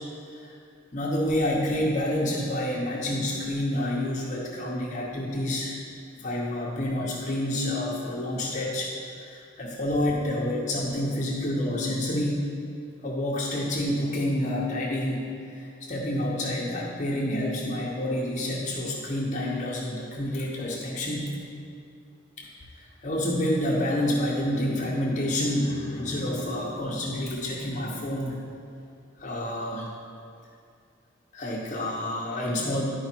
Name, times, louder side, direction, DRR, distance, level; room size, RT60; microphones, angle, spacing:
voice 1, 0.9-5.8 6.2-12.5 13.0-21.3 22.4-22.5 23.0-28.4 29.2-29.9 31.3-32.8, left 1 dB, 40° left, -3 dB, 0.8 m, -28 dB
11.0 x 4.7 x 4.4 m, 2.4 s
head